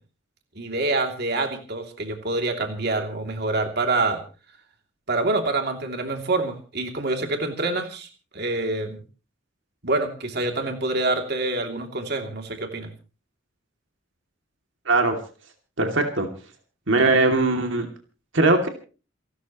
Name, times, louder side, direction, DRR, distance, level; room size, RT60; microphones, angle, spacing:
voice 1, 0.6-4.2 5.1-8.1 8.3-9.0 9.8-12.9, right 2 dB, 55° right, 4 dB, 2.9 m, -26 dB
voice 2, 14.9-15.2 15.8-16.3 16.9-17.9 18.3-18.7, right 2 dB, 70° right, 4 dB, 2.7 m, -20 dB
28.5 x 13.0 x 3.1 m, 0.36 s
head